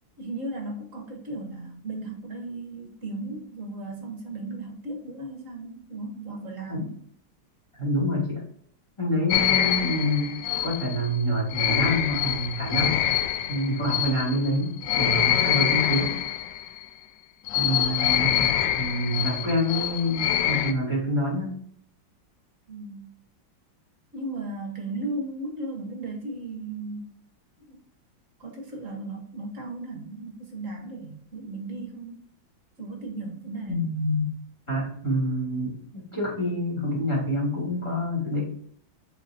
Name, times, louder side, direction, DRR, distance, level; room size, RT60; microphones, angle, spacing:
voice 1, 0.2-7.0 22.7-23.1 24.1-27.1 27.7-27.8 28.4-32.2 32.8-33.9, right 2 dB, 45° right, 1 dB, 1.4 m, -36 dB
voice 2, 7.8-8.4 9.0-10.4 10.6-13.0 13.5-16.2 17.5-18.5 18.7-21.6 33.7-34.3 34.7-38.4, equal, 15° left, -3 dB, 2.6 m, -27 dB
sound 1, 9.3-16.8 17.5-20.7, left 11 dB, 75° left, 1.2 m, -25 dB
8.0 x 4.2 x 2.7 m, 0.62 s
omnidirectional pair, 2.2 m